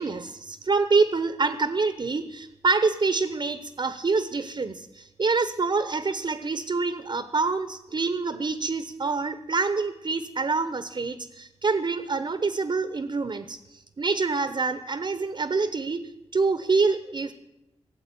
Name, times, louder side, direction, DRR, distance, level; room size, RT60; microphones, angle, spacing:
voice 1, 0.0-16.0 16.3-17.3, right 4 dB, 45° right, 11 dB, 1.1 m, -26 dB
17.5 x 7.8 x 9.3 m, 0.92 s
cardioid pair, 60°, 11 cm